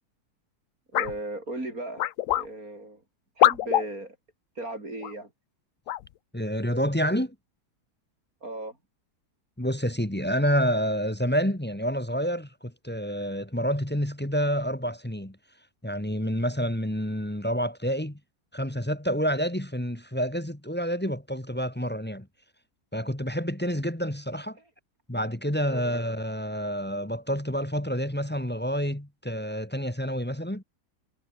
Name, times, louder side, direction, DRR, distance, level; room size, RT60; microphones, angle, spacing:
sound 1, 0.9-1.2 2.0-2.5 3.4-3.9 5.0-5.1 5.9-6.1, left 12 dB, 65° left, 1.0 m, -23 dB
voice 1, 0.9-2.1 2.3-3.0 3.4-4.2 4.6-5.3 8.4-8.8 25.7-25.9, right 2 dB, 60° right, 7.1 m, -36 dB
voice 2, 6.3-7.4 9.6-15.4 15.8-18.2 18.5-22.3 22.9-24.6 25.1-30.6, equal, 5° left, 1.7 m, -28 dB
omnidirectional pair, 1.7 m